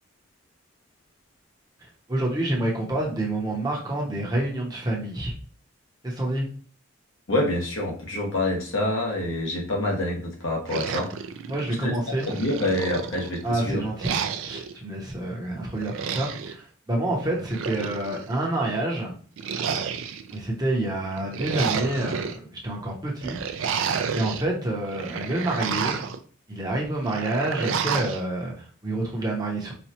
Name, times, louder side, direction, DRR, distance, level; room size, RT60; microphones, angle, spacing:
voice 1, 1.8-5.3 6.0-6.4 11.5-12.3 13.4-19.1 20.3-23.7 24.1-26.0 26.5-29.7, right 1 dB, 20° right, -2 dB, 0.8 m, -28 dB
voice 2, 7.3-11.1 11.8-13.8, left 1 dB, 85° left, -1 dB, 1.1 m, -27 dB
sound 1, 10.7-11.8 12.2-13.4 14.0-14.7 15.8-16.6 17.3-18.3 19.4-20.4 21.1-22.4 23.2-24.4 24.8-26.2 27.1-28.2, right 6 dB, 75° right, 0.4 m, -30 dB
4.2 x 2.3 x 2.9 m, 0.41 s
head